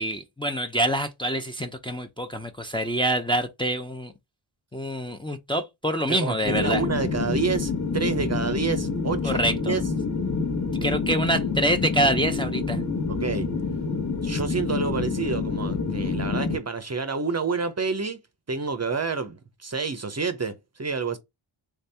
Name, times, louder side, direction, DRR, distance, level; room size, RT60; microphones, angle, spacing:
voice 1, 0.0-4.1 4.7-6.8 9.2-9.8 10.8-12.8, right 1 dB, 10° left, 0.5 m, -26 dB
voice 2, 6.1-9.4 9.7-9.8 13.1-13.5 14.2-18.2 18.5-21.2, right 4 dB, 35° right, 0.6 m, -28 dB
sound 1, 6.4-16.6, left 4 dB, 35° left, 1.0 m, -27 dB
3.5 x 2.7 x 3.3 m
cardioid pair, 55°, 49 cm